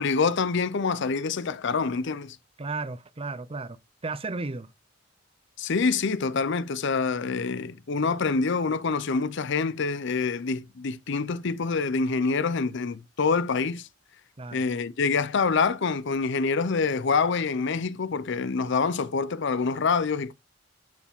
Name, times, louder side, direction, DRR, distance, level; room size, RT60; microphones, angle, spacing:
voice 1, 0.0-2.4 5.6-13.9 14.5-20.3, left 4 dB, 65° left, 0.6 m, -26 dB
voice 2, 2.6-4.7 14.4-14.6, right 3 dB, 30° right, 0.6 m, -34 dB
10.5 x 4.9 x 3.6 m
head